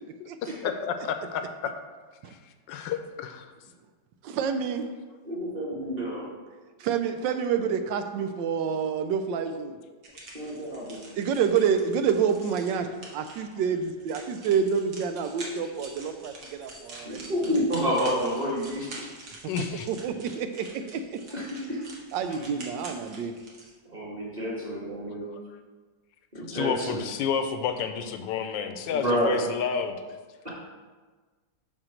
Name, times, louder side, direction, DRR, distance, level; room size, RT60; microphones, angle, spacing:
voice 1, 0.6-1.7 2.7-3.5 19.5-19.9 25.3-25.4 26.5-30.0, left 7 dB, 85° left, 8 dB, 1.3 m, -30 dB
voice 2, 4.2-4.9 6.8-9.8 11.2-17.3 19.4-19.5 19.9-21.2 22.1-23.3, right 7 dB, 85° right, 8 dB, 1.3 m, -28 dB
voice 3, 5.2-6.3 10.3-11.0 17.0-19.1 21.3-21.8 23.9-25.3 26.3-27.0 28.9-29.4, equal, 25° right, -5 dB, 1.7 m, -29 dB
sound 1, 10.0-23.7, right 2 dB, 60° right, 1.9 m, -46 dB
5.9 x 4.5 x 6.3 m, 1.4 s
omnidirectional pair, 2.0 m